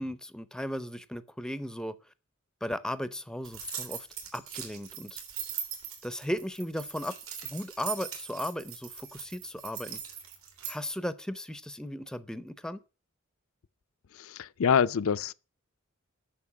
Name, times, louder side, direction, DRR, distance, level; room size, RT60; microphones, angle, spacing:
voice 1, 0.0-2.0 2.6-4.1 4.3-5.2 6.0-7.2 7.4-10.0 10.7-12.8, left 1 dB, 5° left, 0.5 m, -36 dB
sound 1, 3.4-10.8, right 8 dB, 85° right, 3.3 m, -40 dB
voice 2, 14.2-15.3, left 6 dB, 70° left, 0.4 m, -26 dB
8.7 x 6.6 x 8.4 m
head